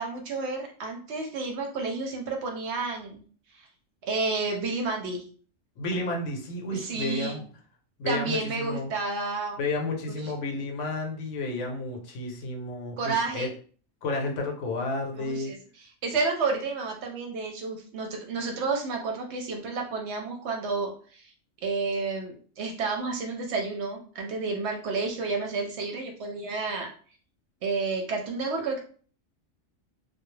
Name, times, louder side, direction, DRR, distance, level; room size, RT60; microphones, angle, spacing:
voice 1, 0.0-3.2 3.5-3.7 4.0-5.2 6.7-7.4 8.0-9.6 10.1-10.3 13.0-13.5 15.1-15.6 16.0-21.3 21.6-26.9 27.6-28.8, right 4 dB, 65° right, 2 dB, 0.8 m, -30 dB
voice 2, 5.8-7.5 8.0-8.9 9.6-13.5 14.0-15.5, left 2 dB, 70° left, 1 dB, 0.9 m, -31 dB
2.3 x 2.1 x 3.1 m, 0.43 s
omnidirectional pair, 1.3 m